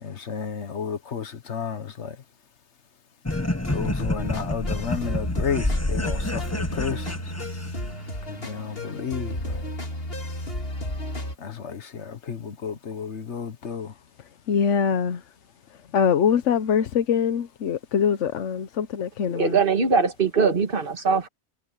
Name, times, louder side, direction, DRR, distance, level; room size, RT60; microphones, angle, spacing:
voice 1, 0.0-2.1 3.7-7.1 8.3-9.6 11.4-13.9, left 6 dB, 70° left, 1.5 m, -32 dB
sound 1, 3.3-11.3, left 1 dB, 55° left, 3.0 m, -33 dB
sound 2, 3.3-8.0, left 1 dB, 15° left, 1.2 m, -28 dB
voice 2, 14.5-15.2 15.9-19.6, left 7 dB, 90° left, 1.2 m, -23 dB
voice 3, 19.3-21.3, right 5 dB, 50° right, 1.9 m, -21 dB
omnidirectional pair, 1.2 m